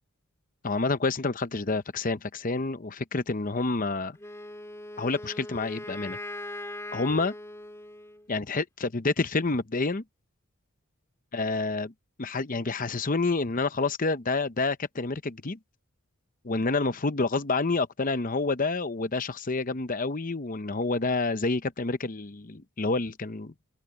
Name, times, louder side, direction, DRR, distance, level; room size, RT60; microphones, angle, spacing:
voice 1, 0.6-4.2 5.0-6.2 6.9-7.3 8.3-10.0 11.3-11.9 12.2-15.6 16.4-23.5, left 3 dB, 40° left, 0.8 m, -28 dB
Wind instrument woodwind instrument, 4.2-8.3, left 1 dB, 15° left, 2.5 m, -40 dB
head